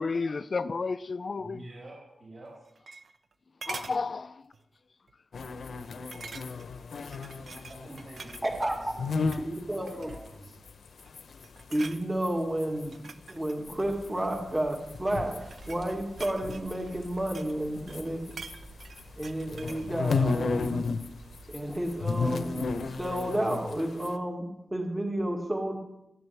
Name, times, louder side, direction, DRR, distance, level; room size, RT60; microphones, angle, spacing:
voice 1, 0.0-1.6 3.7-4.4 5.3-5.4, left 4 dB, 45° left, 0.4 m, -32 dB
voice 2, 1.3-2.5 7.7-10.6, right 1 dB, 40° right, 6.0 m, -48 dB
sound 1, 2.5-3.3 3.6-4.0 4.5-4.8 5.1-5.2 6.1-6.8 7.1-8.8 9.2-9.5 9.9-10.4 10.9-11.2 11.4-12.0 12.8-14.4 15.2-17.6 17.9-19.9 20.2-20.3, right 4 dB, 65° right, 0.8 m, -45 dB
sound 2, 5.3-12.3 12.6-18.6 18.8-21.1 21.3-24.2, left 4 dB, 90° left, 0.8 m, -34 dB
voice 3, 8.4-8.7 9.4-10.1 11.7-18.2 19.2-20.8 21.5-25.8, right 1 dB, 15° right, 2.0 m, -31 dB
sound 3, 13.6-23.2, right 2 dB, 85° right, 4.0 m, -51 dB
18.0 x 14.0 x 3.4 m
wide cardioid pair, 135°, 0 cm